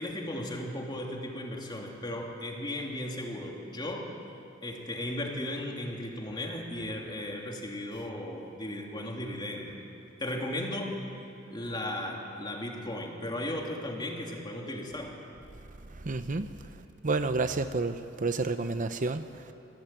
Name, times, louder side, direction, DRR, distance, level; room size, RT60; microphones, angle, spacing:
voice 1, 0.0-4.1 4.6-9.8 10.2-11.0 11.5-15.2, left 1 dB, 25° left, 3.1 m, -36 dB
voice 2, 15.9-19.5, right 3 dB, 40° right, 0.7 m, -31 dB
26.5 x 17.0 x 9.1 m
head